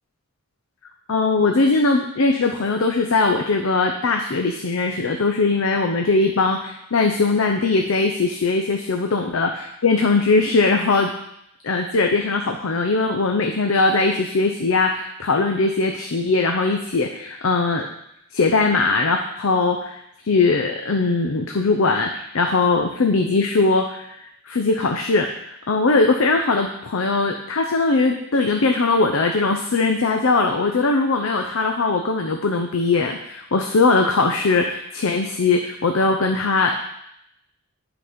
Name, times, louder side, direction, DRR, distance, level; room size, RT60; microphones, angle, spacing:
voice 1, 1.1-11.1 11.6-17.9 18.3-24.2 24.5-36.7, left 3 dB, 80° left, 3 dB, 0.7 m, -20 dB
10.5 x 4.1 x 5.1 m, 0.78 s
head